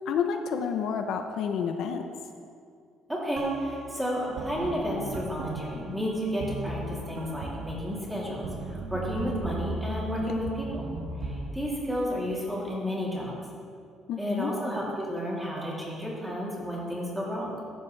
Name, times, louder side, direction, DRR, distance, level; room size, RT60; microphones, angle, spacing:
voice 1, 0.1-2.1 14.1-14.5, left 7 dB, 65° left, 6 dB, 0.7 m, -29 dB
voice 2, 3.1-10.9 11.2-13.3 14.2-17.5, equal, 5° right, -5 dB, 3.1 m, -32 dB
sound 1, 3.4-11.5, right 2 dB, 65° right, 1.6 m, -37 dB
15.0 x 11.5 x 3.4 m, 2.3 s
cardioid pair, 130°, 0 cm